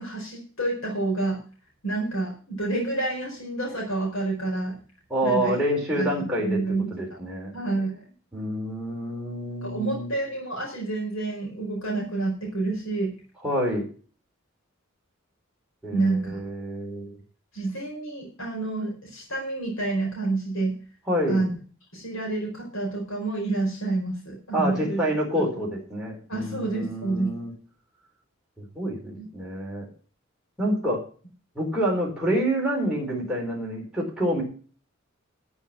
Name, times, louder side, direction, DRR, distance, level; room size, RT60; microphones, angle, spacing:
voice 1, 0.0-1.4 1.8-4.8 5.2-5.6 6.0-7.2 7.5-8.0 9.6-13.1 15.9-16.4 17.5-20.8 21.3-21.5 21.9-25.0 25.4-25.5 26.3-27.3 29.2-29.3, right 2 dB, 75° left, -1 dB, 4.5 m, -28 dB
voice 2, 5.1-6.6 6.9-7.5 8.3-10.1 13.4-13.8 15.8-17.2 21.1-21.4 24.5-27.5 28.6-29.9 30.6-31.0 31.6-34.4, equal, 5° right, -5 dB, 4.1 m, -27 dB
12.5 x 6.4 x 7.3 m, 0.39 s
head